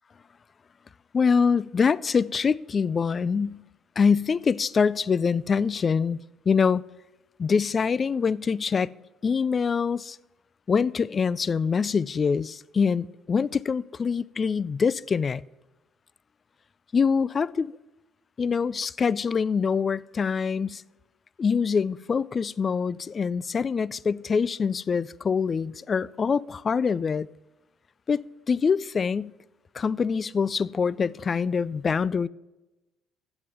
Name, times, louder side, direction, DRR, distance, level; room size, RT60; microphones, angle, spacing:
voice 1, 1.1-3.6 4.0-6.2 6.5-6.8 7.4-8.9 9.2-10.2 10.7-15.4 16.9-17.7 18.4-20.8 21.4-27.3 28.1-29.3 29.7-32.3, left 5 dB, 40° left, 0.3 m, -24 dB
7.9 x 7.7 x 7.3 m
supercardioid pair, 75°, 0 cm